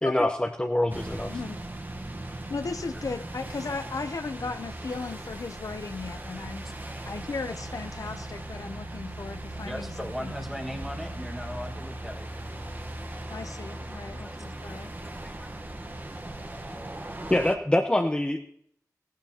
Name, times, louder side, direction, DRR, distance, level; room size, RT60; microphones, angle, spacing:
voice 1, 0.0-1.4 17.3-18.4, left 1 dB, 15° left, 4 dB, 0.8 m, -25 dB
sound 1, 0.9-17.6, right 1 dB, 30° right, 1.1 m, -38 dB
voice 2, 2.5-6.6 7.1-9.9 10.2-10.3 13.3-14.9, left 4 dB, 65° left, 9 dB, 0.6 m, -36 dB
voice 3, 6.6-7.0 9.6-12.3 14.2-14.9 15.2-15.5, equal, 5° right, 4 dB, 1.6 m, -39 dB
16.5 x 12.0 x 2.8 m, 0.65 s
wide cardioid pair, 90°, 6 cm